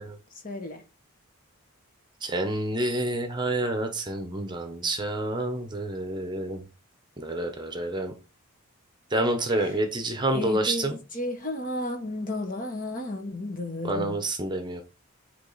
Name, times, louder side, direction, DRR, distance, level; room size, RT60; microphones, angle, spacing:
voice 1, 0.4-0.8 9.5-9.8 10.3-14.2, left 1 dB, 40° left, 1.4 m, -33 dB
voice 2, 2.2-6.6 7.2-8.1 9.1-10.9 13.8-14.8, right 1 dB, 20° right, 0.9 m, -28 dB
8.8 x 3.6 x 4.0 m
head